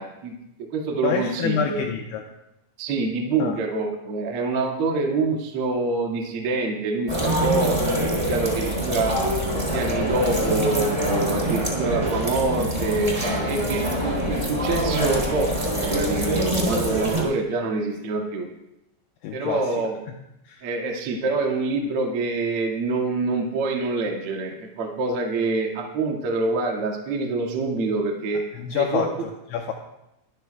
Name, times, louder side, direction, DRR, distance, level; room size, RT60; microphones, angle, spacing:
voice 1, 0.0-1.8 2.8-9.2 9.5-18.5 19.3-19.9 20.6-28.4 28.7-29.1, right 3 dB, 80° right, 0 dB, 1.2 m, -26 dB
voice 2, 1.0-2.2 3.4-3.6 19.2-19.8 20.1-20.2 20.4-20.7 28.5-29.7, left 7 dB, 80° left, 2 dB, 2.8 m, -27 dB
sound 1, 7.1-17.2, right 1 dB, 10° right, 1.8 m, -25 dB
23.5 x 13.5 x 2.3 m, 0.86 s
omnidirectional pair, 6.0 m